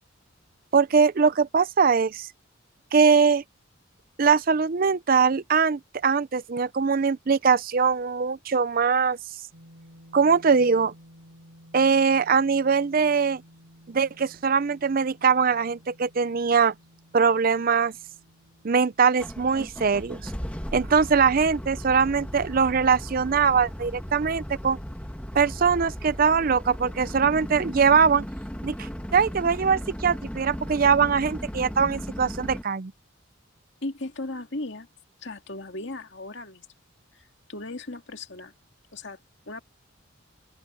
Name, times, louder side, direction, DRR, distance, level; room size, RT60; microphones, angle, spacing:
voice 1, 0.7-2.3 2.9-3.4 4.2-9.2 10.1-10.9 11.7-13.4 13.9-16.7 17.1-17.9 18.6-20.3 20.7-24.8 25.3-28.2 28.6-28.7 29.1-32.9, right 5 dB, 45° right, 0.5 m, -22 dB
sound 1, 9.5-25.5, equal, 80° right, 7.9 m, -55 dB
sound 2, 19.2-32.6, equal, 5° left, 1.4 m, -36 dB
voice 2, 33.8-34.9 35.2-36.7 37.1-38.5 38.9-39.2 39.5-39.6, left 2 dB, 60° left, 2.2 m, -36 dB
open air
head